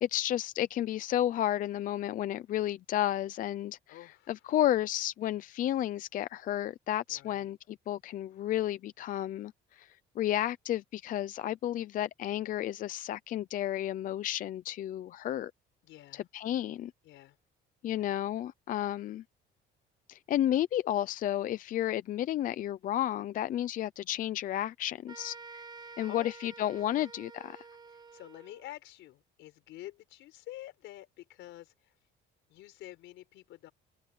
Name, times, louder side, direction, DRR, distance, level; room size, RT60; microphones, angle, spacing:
voice 1, 0.0-4.0 4.3-15.5 16.1-16.9 17.8-19.2 20.1-25.4 26.0-27.6, left 12 dB, 45° left, 0.5 m, -32 dB
voice 2, 3.9-4.4 7.1-7.5 15.8-16.2 17.0-17.4 17.9-18.2 25.8-26.5 26.8-27.1 27.9-31.9 32.5-33.7, left 15 dB, 80° left, 4.2 m, -49 dB
sound 1, 25.1-28.7, right 4 dB, 20° right, 1.0 m, -50 dB
cardioid pair, 165°, 19 cm